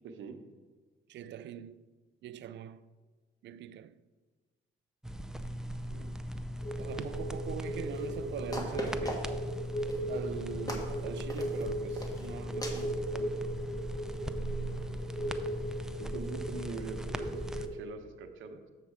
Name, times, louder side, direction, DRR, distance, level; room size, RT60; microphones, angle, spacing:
voice 1, 0.0-0.4 5.9-6.2 16.0-18.7, right 5 dB, 80° right, 0.8 m, -44 dB
voice 2, 1.1-1.8 2.2-2.8 3.4-3.9 6.8-9.3 10.1-13.5, right 10 dB, 65° right, 0.4 m, -43 dB
sound 1, 5.0-17.7, equal, 5° right, 0.4 m, -39 dB
sound 2, 6.6-17.7, equal, 70° left, 2.0 m, -38 dB
sound 3, 8.0-8.1 8.5-9.5 9.9-10.2 10.7-10.9 11.3-11.6 12.0-12.3 12.6-12.9, equal, 20° left, 1.4 m, -38 dB
7.1 x 6.7 x 4.8 m
cardioid pair, 90°, 20 cm